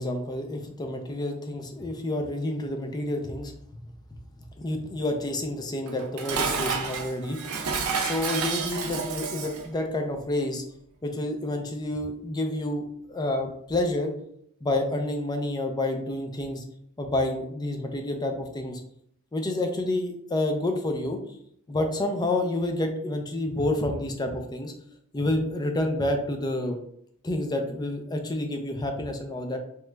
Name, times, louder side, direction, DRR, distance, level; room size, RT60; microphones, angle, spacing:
voice 1, 0.0-3.5 4.6-7.4 8.0-10.6 11.0-12.8 13.1-14.1 14.6-16.6 17.0-18.8 19.3-21.2 21.7-24.7 25.1-26.8 27.2-29.6, left 1 dB, 20° left, 4 dB, 0.4 m, -29 dB
Dishes pots and pans, 5.9-9.7, right 5 dB, 80° right, 0.5 m, -30 dB
3.0 x 2.3 x 3.2 m, 0.71 s
head